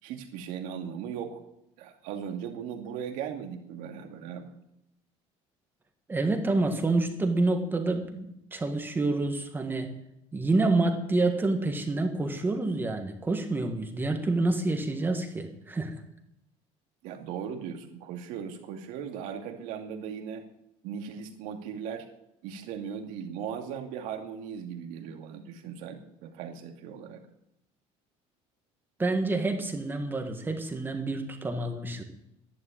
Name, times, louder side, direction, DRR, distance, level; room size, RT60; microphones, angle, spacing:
voice 1, 0.0-1.4 1.8-4.5 17.0-20.4 20.8-22.1 22.4-27.2, right 7 dB, 75° right, 4 dB, 2.5 m, -38 dB
voice 2, 6.1-9.9 10.3-15.9 29.0-32.0, right 2 dB, 15° right, 5 dB, 1.7 m, -28 dB
12.0 x 11.5 x 8.8 m, 0.80 s
cardioid pair, 145°, 13 cm